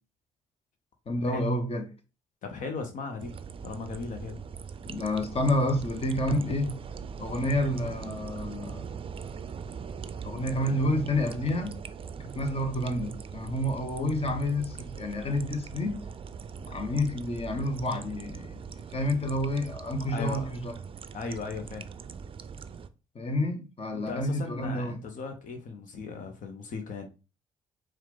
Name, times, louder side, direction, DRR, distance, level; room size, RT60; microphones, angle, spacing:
voice 1, 1.1-1.8 4.8-6.8 7.2-8.9 10.2-11.8 12.2-16.0 16.6-20.7 23.1-25.0, left 1 dB, 40° left, 1.2 m, -29 dB
voice 2, 2.4-3.3 3.6-4.4 20.1-20.5 21.1-21.8 23.9-27.1, left 4 dB, 60° left, 0.8 m, -37 dB
sound 1, 3.2-22.9, right 6 dB, 40° right, 0.4 m, -41 dB
4.6 x 2.4 x 3.8 m
hypercardioid pair, 50°, 15 cm